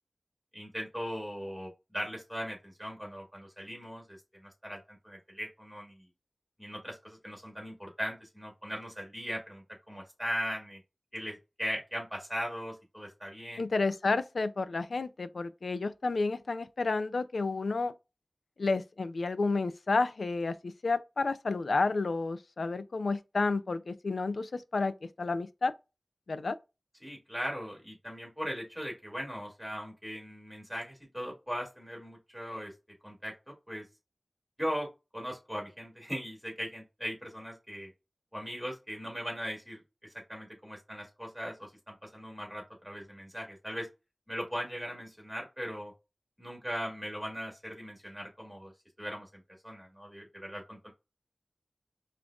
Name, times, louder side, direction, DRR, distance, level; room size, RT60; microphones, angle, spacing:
voice 1, 0.5-6.0 6.6-10.8 11.1-13.6 27.0-32.7 33.0-33.8 34.6-37.9 38.3-39.8 40.3-43.9 44.3-45.9 46.4-48.7 49.0-50.9, equal, ahead, 2.1 m, -39 dB
voice 2, 13.6-17.9 18.6-25.7 26.3-26.6, left 3 dB, 85° left, 0.3 m, -31 dB
5.2 x 2.4 x 2.3 m
wide cardioid pair, 65°, 0 cm